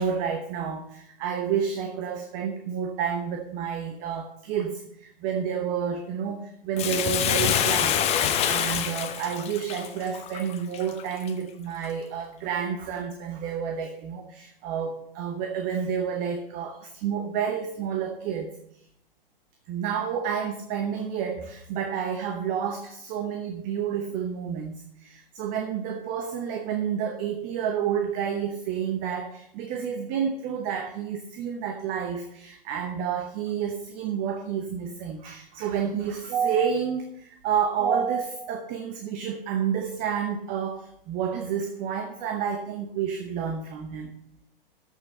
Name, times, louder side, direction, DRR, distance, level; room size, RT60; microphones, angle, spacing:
voice 1, 0.0-8.1 8.5-18.6 19.7-44.1, right 7 dB, 30° right, 5 dB, 0.9 m, -30 dB
Bathtub (filling or washing), 6.8-11.3 11.8-11.9, left 9 dB, 20° left, 0.8 m, -26 dB
14.0 x 6.5 x 4.3 m, 0.73 s
figure-of-eight pair, 110°, 30 cm